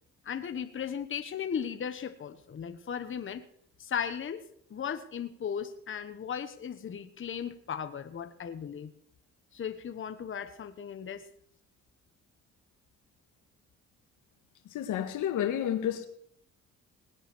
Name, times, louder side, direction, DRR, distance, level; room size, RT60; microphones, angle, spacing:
voice 1, 0.2-3.4 3.8-4.4 4.7-8.9 9.5-11.3, left 7 dB, 40° left, 1.2 m, -36 dB
voice 2, 14.7-16.1, left 10 dB, 85° left, 1.6 m, -30 dB
19.5 x 8.1 x 6.1 m
cardioid pair, 90°, 30 cm